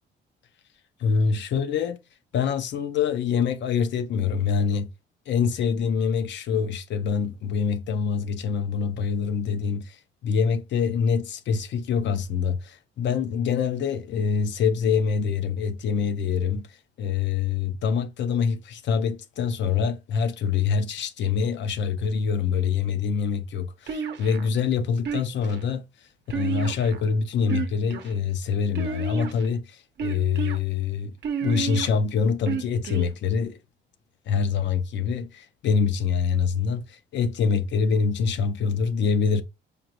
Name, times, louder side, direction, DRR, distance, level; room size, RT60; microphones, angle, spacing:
voice 1, 1.0-2.0 2.3-4.9 5.3-16.7 17.0-25.8 26.3-31.1 31.4-33.6 34.3-39.4, left 6 dB, 65° left, 0.6 m, -25 dB
sound 1, 23.9-24.5 25.1-25.6 26.3-27.0 27.4-28.1 28.8-29.5 30.0-30.6 31.2-31.9 32.5-33.1, right 6 dB, 60° right, 0.7 m, -30 dB
5.0 x 2.5 x 2.9 m
cardioid pair, 90°, 20 cm